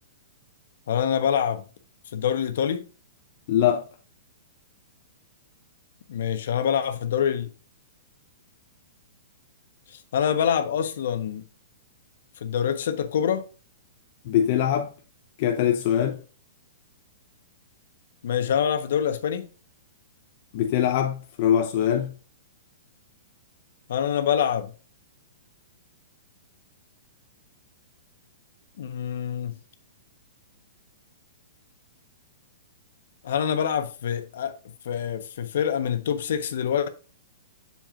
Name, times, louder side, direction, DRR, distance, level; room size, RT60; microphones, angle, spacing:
voice 1, 0.9-1.6 2.1-2.9 6.1-7.5 9.9-11.4 12.4-13.4 18.2-19.5 23.9-24.7 28.8-29.5 33.2-34.6 34.8-36.9, left 8 dB, 65° left, 1.1 m, -25 dB
voice 2, 3.5-3.8 14.3-14.9 15.4-16.2 20.5-22.1, left 10 dB, 50° left, 0.7 m, -22 dB
7.4 x 7.1 x 2.5 m
hypercardioid pair, 125°, 0 cm